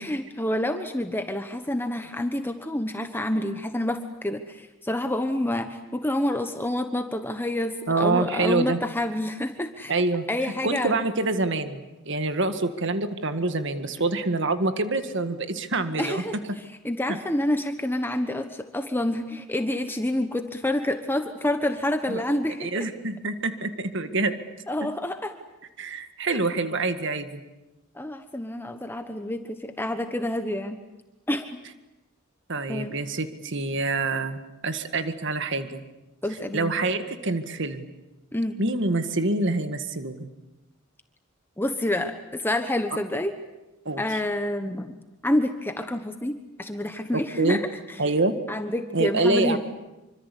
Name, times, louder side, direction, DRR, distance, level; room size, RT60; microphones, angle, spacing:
voice 1, 0.0-10.0 10.3-11.0 16.0-22.9 24.7-25.3 26.3-26.4 27.9-30.8 31.3-31.6 32.7-32.9 36.2-36.7 38.3-38.6 41.6-43.3 44.0-45.0 45.2-48.0 48.5-49.6, left 1 dB, 10° left, 7 dB, 1.1 m, -28 dB
voice 2, 7.9-8.8 9.9-10.2 10.6-16.2 17.1-17.2 22.1-22.2 22.6-24.4 24.8-24.9 25.8-27.4 32.5-35.8 36.5-37.9 38.6-40.3 43.9-44.0 47.1-47.6 48.0-48.3 48.9-49.6, right 2 dB, 60° right, 9 dB, 1.9 m, -26 dB
26.0 x 25.5 x 8.4 m, 1.0 s
head